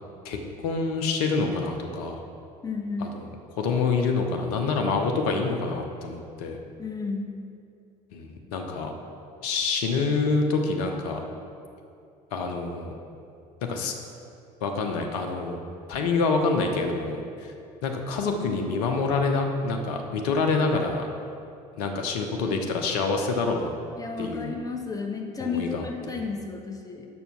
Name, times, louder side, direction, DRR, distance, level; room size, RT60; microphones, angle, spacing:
voice 1, 0.2-2.2 3.0-3.3 3.6-6.6 8.1-8.9 9.4-11.2 12.3-12.9 13.7-13.9 14.6-15.6 15.9-17.5 17.8-21.1 21.8-23.7 24.2-24.5 25.4-26.3, left 4 dB, 60° left, 3 dB, 0.9 m, -27 dB
voice 2, 2.6-3.2 6.8-7.4 24.0-27.1, left 4 dB, 15° left, 2 dB, 1.1 m, -32 dB
6.9 x 6.2 x 5.8 m, 2.5 s
figure-of-eight pair, 60°, 21 cm